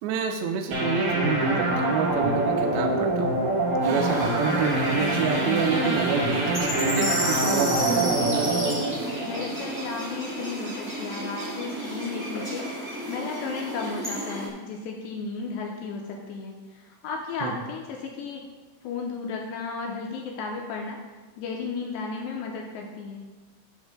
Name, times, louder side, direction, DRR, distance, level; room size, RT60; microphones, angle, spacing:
voice 1, 0.0-3.4 3.8-8.5 17.4-17.6, right 6 dB, 85° right, 3 dB, 2.5 m, -28 dB
sound 1, 0.7-10.1, right 2 dB, 50° right, 4.5 m, -25 dB
sound 2, 3.8-14.5, equal, 5° right, 1.3 m, -32 dB
voice 2, 9.2-18.4 18.8-21.0 21.4-23.3, left 4 dB, 80° left, 0 dB, 2.5 m, -34 dB
11.0 x 9.9 x 2.2 m, 1.3 s
omnidirectional pair, 5.7 m